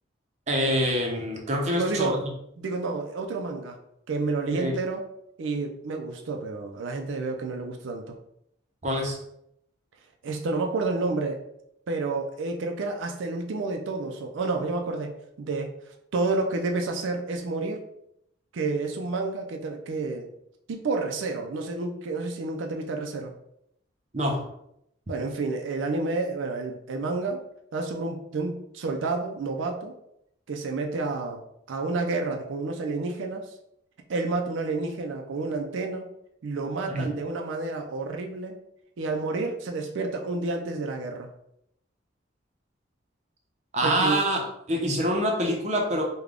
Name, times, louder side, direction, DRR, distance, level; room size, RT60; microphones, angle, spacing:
voice 1, 0.5-2.2 4.5-4.8 8.8-9.2 24.1-24.5 36.9-37.1 43.7-46.0, equal, 35° right, 1 dB, 0.6 m, -26 dB
voice 2, 1.7-2.1 2.6-3.8 4.1-5.1 5.4-8.1 10.2-11.4 11.9-15.7 16.1-17.8 18.5-20.3 20.7-23.3 25.1-27.4 27.7-29.9 30.5-31.4 31.7-33.5 34.1-36.1 36.4-38.6 39.0-41.3 43.8-44.2, right 3 dB, 80° right, 3 dB, 0.4 m, -30 dB
3.3 x 2.2 x 3.6 m, 0.77 s
head